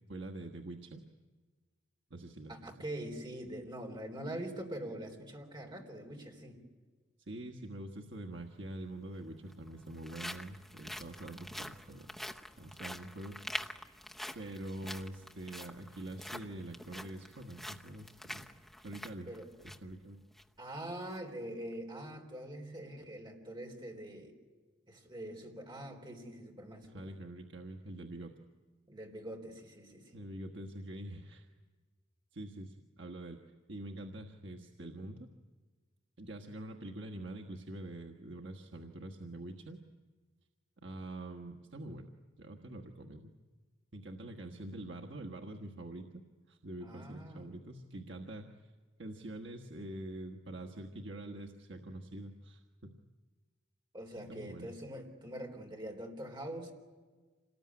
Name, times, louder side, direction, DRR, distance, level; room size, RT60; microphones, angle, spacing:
voice 1, 0.1-1.0 2.1-2.7 7.3-12.2 12.6-13.4 14.3-18.5 18.8-19.3 19.6-20.2 26.9-28.3 30.1-31.5 32.3-33.4 33.7-35.3 36.2-39.8 40.8-42.1 42.4-43.3 43.9-46.2 46.5-48.7 49.0-53.0 54.2-54.7, right 1 dB, 65° right, 3 dB, 1.4 m, -45 dB
voice 2, 2.5-6.6 19.3-19.5 20.6-24.3 24.9-27.2 28.9-30.2 46.8-47.5 53.9-56.7, right 1 dB, 25° right, 2 dB, 3.7 m, -44 dB
sound 1, 8.3-8.4 9.4-19.9 20.3-20.4 20.9-21.2, left 1 dB, ahead, 0.9 m, -46 dB
27.0 x 19.5 x 9.7 m, 1.4 s
head